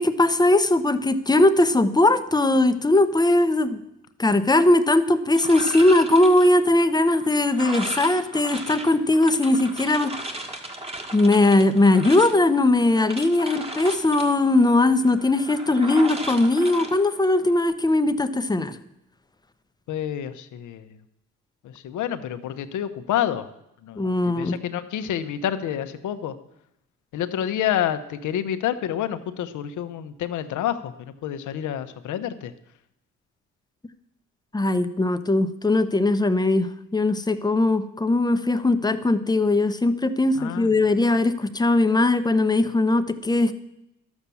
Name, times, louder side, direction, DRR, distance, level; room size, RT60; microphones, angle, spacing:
voice 1, 0.0-3.8 4.2-10.5 11.1-18.8 24.0-24.6 34.5-43.5, left 2 dB, 15° left, 10 dB, 0.8 m, -20 dB
sound 1, 5.3-17.6, right 1 dB, 20° right, 1.6 m, -37 dB
voice 2, 19.9-21.0 21.6-23.5 23.8-26.4 27.1-32.5 40.3-40.8, left 10 dB, 80° left, 10 dB, 1.0 m, -28 dB
12.0 x 7.3 x 7.0 m, 0.83 s
cardioid pair, 90°, 30 cm